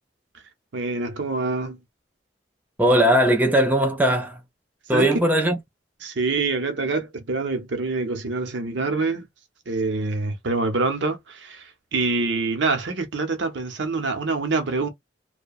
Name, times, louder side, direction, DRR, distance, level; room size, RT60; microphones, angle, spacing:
voice 1, 0.7-1.8 4.9-5.2 6.0-9.3 9.7-11.6 11.9-14.9, right 3 dB, 70° right, 0.7 m, -25 dB
voice 2, 2.8-4.4 4.9-5.6, right 1 dB, 10° right, 0.4 m, -19 dB
2.7 x 2.1 x 2.3 m
head